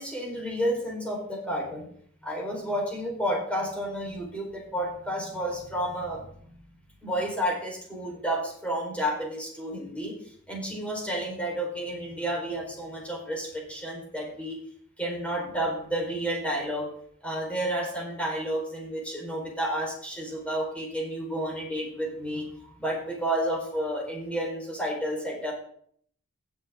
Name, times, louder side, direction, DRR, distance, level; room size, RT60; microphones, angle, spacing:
voice 1, 0.0-1.9 2.2-6.3 7.0-10.1 10.5-14.6 15.0-16.9 17.2-25.5, equal, 5° left, -3 dB, 4.3 m, -31 dB
15.5 x 7.2 x 3.7 m, 0.63 s
head